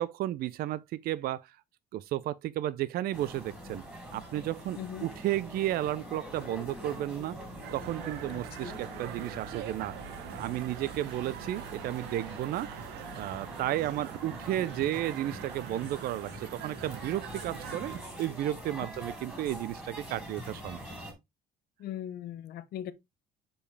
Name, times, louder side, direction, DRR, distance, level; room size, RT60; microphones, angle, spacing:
voice 1, 0.0-1.6 1.9-3.8 4.1-7.4 7.7-12.7 13.1-17.9 18.2-20.8, right 13 dB, 65° right, 0.4 m, -33 dB
sound 1, 3.1-21.1, equal, 10° right, 4.3 m, -44 dB
voice 2, 4.7-5.1 8.3-8.8 18.8-18.9 21.8-22.9, left 11 dB, 70° left, 0.9 m, -40 dB
sound 2, 7.6-18.0, right 12 dB, 85° right, 0.8 m, -44 dB
7.0 x 5.1 x 3.2 m
cardioid pair, 110°, 17 cm